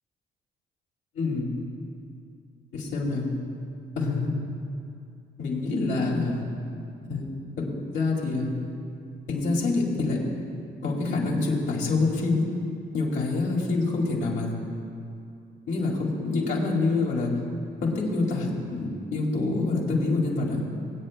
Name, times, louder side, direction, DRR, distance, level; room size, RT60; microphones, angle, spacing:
voice 1, 1.1-1.5 2.7-3.3 4.0-4.3 5.4-6.4 7.0-7.2 7.6-7.7 7.9-8.5 9.3-10.2 10.8-12.5 12.9-14.5 15.7-17.3 17.8-20.6, left 3 dB, 90° left, -3 dB, 2.5 m, -26 dB
24.5 x 8.7 x 2.2 m, 2.5 s
cardioid pair, 90°, 20 cm